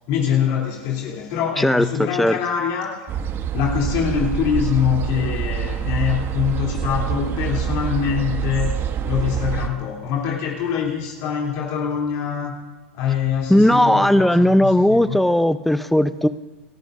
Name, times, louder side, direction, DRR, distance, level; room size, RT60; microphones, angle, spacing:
voice 1, 0.1-3.1 3.5-12.5 12.9-15.2, left 8 dB, 55° left, -2 dB, 3.0 m, -24 dB
sound 1, 3.1-9.7, right 8 dB, 35° right, 1.0 m, -26 dB
voice 2, 13.5-16.3, left 1 dB, ahead, 13 dB, 0.6 m, -16 dB
27.0 x 13.5 x 2.6 m, 1.2 s
hypercardioid pair, 100°, 7 cm